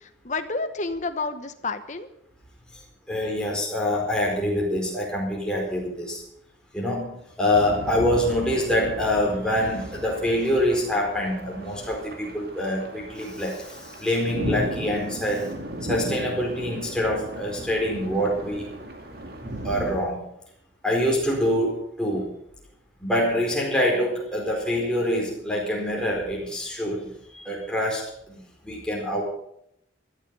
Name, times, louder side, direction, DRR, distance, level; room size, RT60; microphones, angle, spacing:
voice 1, 0.0-2.1, left 3 dB, 40° left, 8 dB, 1.1 m, -30 dB
voice 2, 3.1-6.2 6.7-15.4 15.8-18.9 19.6-20.2 20.8-22.3 23.0-27.1 27.3-28.0 28.7-29.2, left 1 dB, 5° left, -3 dB, 4.5 m, -25 dB
sound 1, 7.5-20.0, right 1 dB, 50° right, 2.3 m, -35 dB
17.0 x 12.0 x 5.4 m, 0.74 s
head